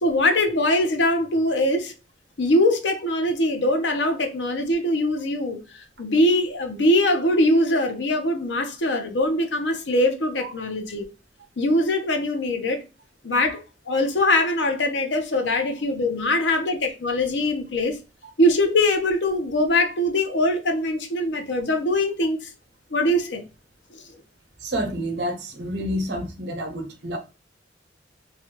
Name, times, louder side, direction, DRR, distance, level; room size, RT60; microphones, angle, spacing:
voice 1, 0.0-1.9 2.4-11.1 11.6-12.8 13.2-18.0 18.4-22.5 22.9-23.4 23.9-24.0, left 1 dB, 80° left, 0.7 m, -22 dB
voice 2, 24.6-27.2, equal, 65° right, 0.8 m, -29 dB
3.2 x 2.3 x 2.9 m
head